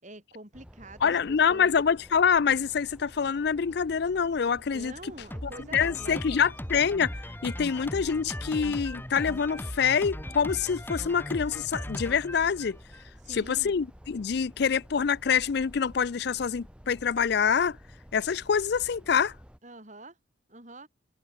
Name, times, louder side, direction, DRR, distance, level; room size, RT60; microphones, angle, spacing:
voice 1, 0.0-1.7 4.7-6.5 13.2-13.8 19.6-20.2 20.5-20.9, right 1 dB, 35° right, 7.7 m, -46 dB
sound 1, 0.5-19.6, equal, 5° right, 5.0 m, -51 dB
voice 2, 1.0-4.9 5.4-7.1 7.4-12.8 13.3-17.8 18.1-19.3, left 6 dB, 55° left, 0.4 m, -26 dB
Drum kit, 5.3-13.1, equal, 10° left, 2.8 m, -38 dB
head